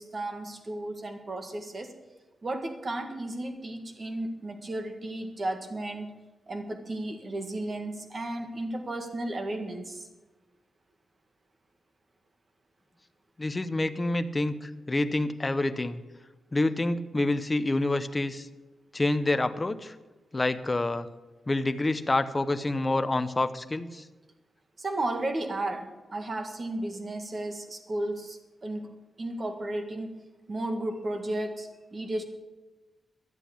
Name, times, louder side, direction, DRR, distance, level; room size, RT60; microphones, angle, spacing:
voice 1, 0.0-1.9 2.4-6.1 6.5-10.1 24.8-28.9 29.2-30.1 30.5-32.2, right 1 dB, 35° right, 6 dB, 1.7 m, -34 dB
voice 2, 13.4-16.0 16.5-18.5 18.9-19.9 20.3-21.1 21.5-24.0, left 2 dB, 20° left, 11 dB, 0.7 m, -27 dB
12.0 x 8.1 x 8.3 m, 1.1 s
wide cardioid pair, 120°, 0 cm